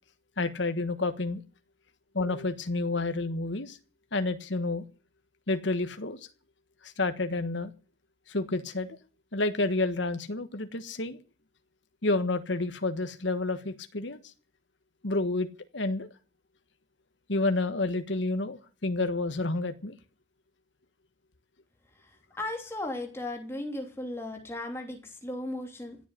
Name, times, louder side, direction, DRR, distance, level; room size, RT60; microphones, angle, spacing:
voice 1, 0.4-1.4 2.1-3.8 4.1-4.8 5.5-6.2 6.8-7.7 8.3-8.9 9.3-11.2 12.0-14.2 15.0-15.5 15.7-16.1 17.3-19.9, left 2 dB, 80° left, 9 dB, 1.4 m, -29 dB
voice 2, 22.4-26.0, left 1 dB, 15° left, 3 dB, 3.0 m, -36 dB
16.5 x 7.9 x 9.9 m, 0.38 s
head